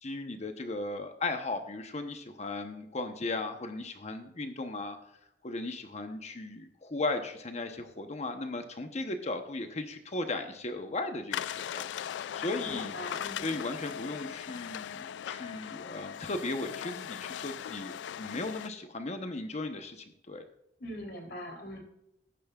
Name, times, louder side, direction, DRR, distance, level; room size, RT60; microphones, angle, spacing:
voice 1, 0.0-5.0 5.4-13.0 13.4-20.4, left 2 dB, 40° left, 7 dB, 0.9 m, -36 dB
sound 1, 11.3-18.7, left 9 dB, 85° left, 0.3 m, -39 dB
voice 2, 12.6-13.6 20.8-21.8, equal, 65° left, 2 dB, 3.4 m, -42 dB
14.0 x 10.5 x 2.4 m, 0.79 s
head